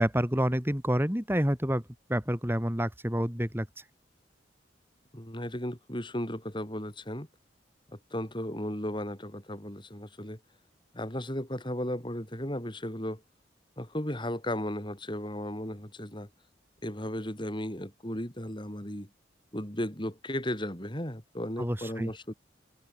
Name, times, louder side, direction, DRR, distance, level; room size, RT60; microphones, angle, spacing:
voice 1, 0.0-1.8 2.1-3.7 21.6-22.1, equal, 10° right, 3.3 m, -28 dB
voice 2, 5.1-7.3 7.9-10.4 10.9-13.2 13.8-16.3 16.8-19.1 19.5-22.3, left 1 dB, 25° left, 5.3 m, -35 dB
head